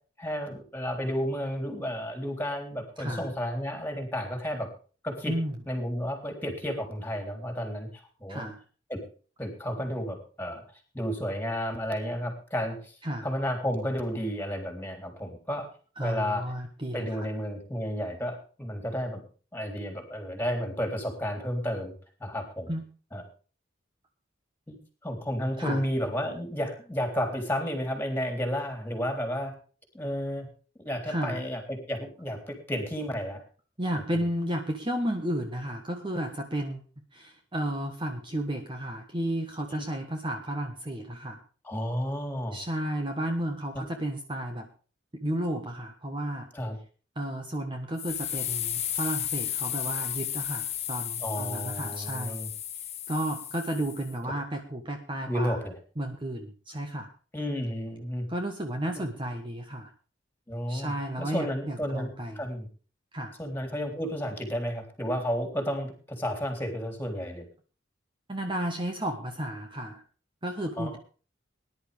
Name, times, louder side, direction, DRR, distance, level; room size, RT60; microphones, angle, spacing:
voice 1, 0.2-4.7 5.0-5.3 5.7-8.5 8.9-9.0 9.4-10.6 10.9-15.7 16.0-16.4 16.9-19.2 19.5-21.9 22.2-22.7 23.1-23.2 24.7-24.8 25.0-29.5 29.9-30.5 30.8-33.4 41.6-42.6 43.8-43.9 46.5-46.8 51.2-52.5 55.3-55.7 57.3-58.3 60.5-60.9 61.2-62.1 62.4-62.7 63.4-67.5 70.8-71.0, equal, 10° left, 4 dB, 3.6 m, -32 dB
voice 2, 3.0-3.3 5.3-5.5 8.3-8.6 13.0-13.3 16.0-17.3 22.7-22.8 25.6-25.8 31.1-31.5 33.8-36.8 37.1-41.4 42.5-44.7 45.1-46.5 47.1-52.4 52.7-55.6 56.0-57.1 58.3-59.9 60.7-62.4 63.1-63.3 68.3-70.0 70.4-71.0, right 1 dB, 25° right, 4 dB, 1.4 m, -33 dB
sound 1, 48.0-54.1, left 10 dB, 35° left, 1.3 m, -34 dB
19.5 x 11.0 x 3.5 m, 0.38 s
head